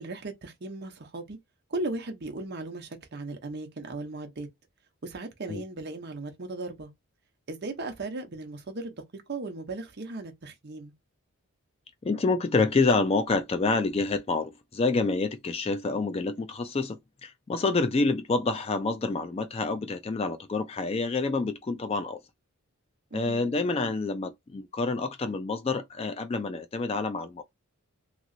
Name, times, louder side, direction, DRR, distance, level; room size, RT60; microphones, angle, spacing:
voice 1, 0.0-1.4 1.7-4.5 5.0-6.9 7.5-10.9 23.1-23.5, right 2 dB, 50° right, 0.7 m, -37 dB
voice 2, 12.0-22.2 23.1-27.4, left 3 dB, 25° left, 0.3 m, -28 dB
3.0 x 2.8 x 2.6 m
head